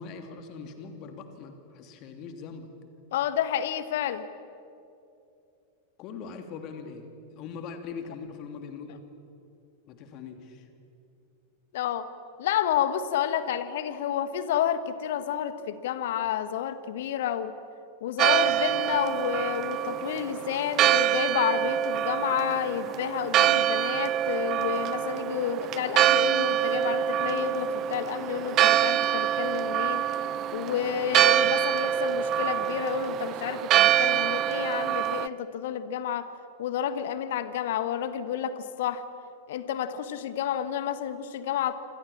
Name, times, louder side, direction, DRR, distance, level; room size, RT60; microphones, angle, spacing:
voice 1, 0.0-2.7 6.0-9.0 9.9-10.7, left 5 dB, 40° left, 6 dB, 2.9 m, -41 dB
voice 2, 3.1-4.2 11.7-12.1 12.4-17.5 18.0-30.0 30.5-36.3 36.6-39.0 39.5-41.7, left 9 dB, 55° left, 12 dB, 1.5 m, -30 dB
Church bell, 18.2-35.3, right 11 dB, 35° right, 0.6 m, -25 dB
27.0 x 27.0 x 7.3 m, 2.7 s
figure-of-eight pair, 90°, 0 cm